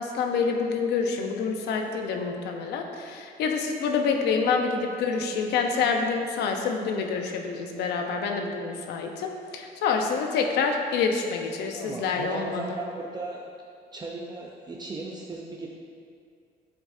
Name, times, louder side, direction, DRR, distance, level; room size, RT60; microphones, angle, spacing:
voice 1, 0.0-12.6, left 5 dB, 80° left, 3 dB, 0.9 m, -27 dB
voice 2, 11.7-13.5 13.9-15.7, right 2 dB, 25° right, -2 dB, 0.7 m, -36 dB
9.7 x 7.4 x 2.7 m, 2.3 s
cardioid pair, 110°, 17 cm